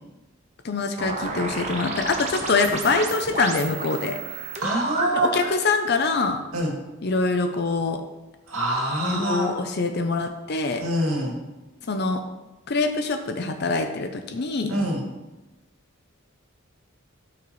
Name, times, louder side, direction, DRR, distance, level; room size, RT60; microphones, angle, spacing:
voice 1, 0.6-4.2 5.1-6.4 7.0-8.0 9.0-10.9 11.9-12.2 12.7-14.7, left 3 dB, 50° left, 6 dB, 0.6 m, -24 dB
sound 1, 1.0-5.6, right 3 dB, 35° right, 1.0 m, -32 dB
voice 2, 4.6-5.3 6.5-6.7 8.5-9.5 10.8-11.3 14.7-15.0, right 1 dB, 80° right, -1 dB, 2.3 m, -25 dB
13.0 x 5.8 x 3.1 m, 1.1 s
head